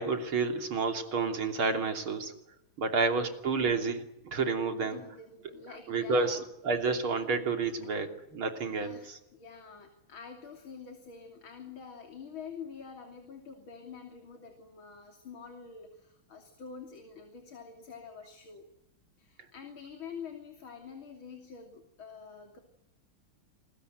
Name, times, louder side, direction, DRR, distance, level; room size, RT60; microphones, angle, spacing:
voice 1, 0.0-2.3 2.8-5.2 5.4-9.2, right 4 dB, 85° right, 6 dB, 3.9 m, -30 dB
voice 2, 4.8-6.4 7.8-7.9 8.7-18.7 19.2-22.6, left 6 dB, 75° left, 5 dB, 3.8 m, -47 dB
27.5 x 21.0 x 9.2 m, 0.81 s
omnidirectional pair, 2.2 m